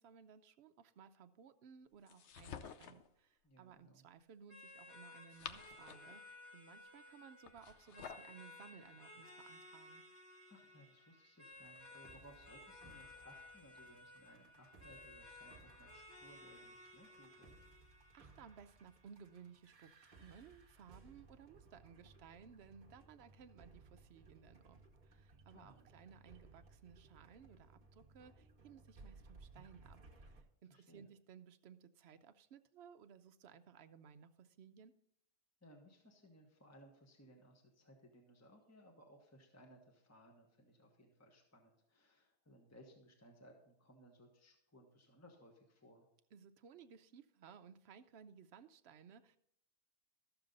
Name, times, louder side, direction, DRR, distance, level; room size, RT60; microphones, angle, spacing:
voice 1, 0.0-10.0 18.1-34.9 46.3-49.4, right 7 dB, 60° right, 10 dB, 0.7 m, -59 dB
sound 1, 2.1-3.1 5.0-6.2 7.4-8.3, left 8 dB, 60° left, 0.9 m, -51 dB
voice 2, 3.4-4.0 10.5-17.5 25.5-25.9 30.7-31.1 35.6-46.1, equal, 10° left, 2 dB, 1.2 m, -63 dB
sound 2, 4.5-19.5, left 2 dB, 45° left, 2.5 m, -58 dB
sound 3, 11.5-30.4, right 3 dB, 35° right, 1.3 m, -63 dB
13.0 x 7.0 x 3.9 m, 0.71 s
omnidirectional pair, 1.5 m